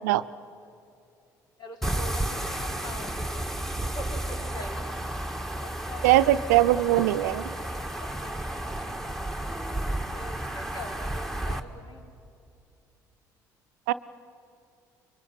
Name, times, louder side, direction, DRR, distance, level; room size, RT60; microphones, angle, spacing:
voice 1, 1.6-3.5 3.8-4.9 5.6-6.5 8.0-9.1 10.1-12.0, left 1 dB, 55° left, 4 dB, 4.2 m, -44 dB
sound 1, 1.8-11.6, right 1 dB, 5° left, 2.0 m, -32 dB
voice 2, 6.0-7.5 13.9-14.0, right 14 dB, 85° right, 13 dB, 0.7 m, -21 dB
25.0 x 23.0 x 9.5 m, 2.6 s
hypercardioid pair, 60°, 9 cm